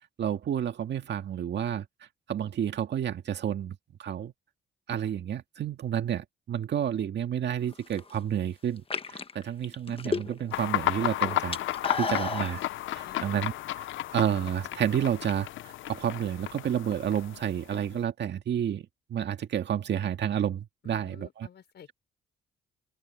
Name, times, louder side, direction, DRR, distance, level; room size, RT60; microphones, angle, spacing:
voice 1, 0.2-1.9 2.3-4.3 4.9-11.6 12.0-12.6 12.9-13.5 14.1-21.5, right 9 dB, 60° right, 2.0 m, -30 dB
sound 1, 7.7-8.2 8.8-10.6 10.9-12.6, left 4 dB, 30° left, 1.3 m, -32 dB
sound 2, 10.5-18.0, left 14 dB, 75° left, 0.7 m, -33 dB
voice 2, 13.0-13.7 20.8-21.9, left 9 dB, 60° left, 5.7 m, -51 dB
open air
cardioid pair, 90°, 20 cm